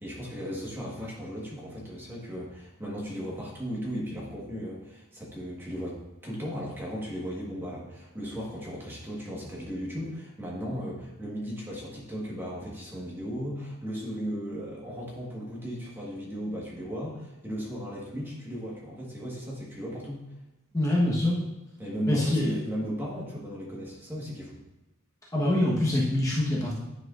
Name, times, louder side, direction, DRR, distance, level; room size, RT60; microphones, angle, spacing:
voice 1, 0.0-20.3 21.8-24.6, equal, 10° right, -4 dB, 1.4 m, -36 dB
voice 2, 20.7-21.4 22.1-22.6 25.3-26.7, left 1 dB, 15° left, -6 dB, 1.2 m, -24 dB
10.0 x 6.0 x 2.5 m, 0.99 s
head